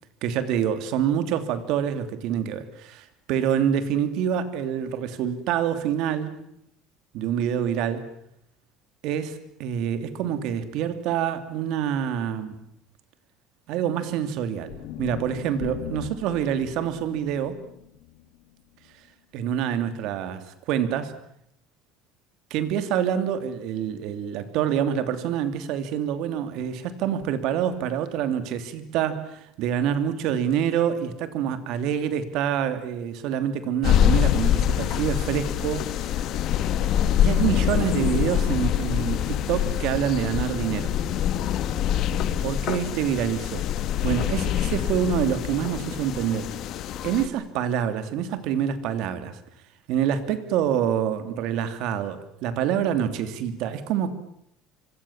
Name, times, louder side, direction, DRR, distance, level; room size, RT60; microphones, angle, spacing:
voice 1, 0.2-6.5 7.1-8.1 9.0-12.6 13.7-17.6 19.3-21.2 22.5-35.9 37.2-40.9 42.4-43.7 44.0-46.5 47.0-49.4 49.9-54.1, right 9 dB, 65° right, 2.9 m, -26 dB
sound 1, 14.7-18.9, left 11 dB, 75° left, 2.6 m, -39 dB
sound 2, 33.8-47.3, left 10 dB, 50° left, 1.9 m, -25 dB
25.5 x 25.0 x 7.4 m
cardioid pair, 140°, 0 cm